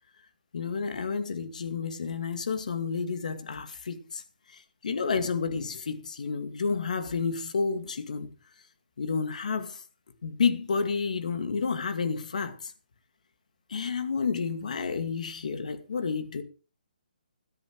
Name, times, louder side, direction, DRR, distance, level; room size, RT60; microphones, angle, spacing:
voice 1, 0.5-4.2 4.5-8.3 9.0-9.8 10.2-12.7 13.7-16.4, left 5 dB, 55° left, 2.3 m, -30 dB
16.5 x 13.0 x 3.3 m
hypercardioid pair, 175°, 5 cm